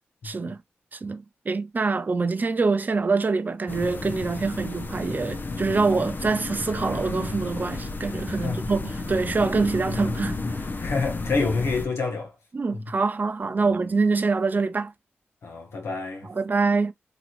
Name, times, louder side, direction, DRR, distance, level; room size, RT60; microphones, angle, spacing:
voice 1, 0.2-0.6 0.9-10.7 12.5-14.9 16.2-16.9, right 4 dB, 40° right, 0.4 m, -25 dB
sound 1, 3.7-11.9, left 3 dB, 50° left, 0.6 m, -32 dB
voice 2, 8.3-8.7 10.8-12.3 12.7-12.8 13.6-13.7 15.4-16.3, left 4 dB, 85° left, 1.0 m, -28 dB
2.9 x 2.9 x 2.4 m
cardioid pair, 55°, 4 cm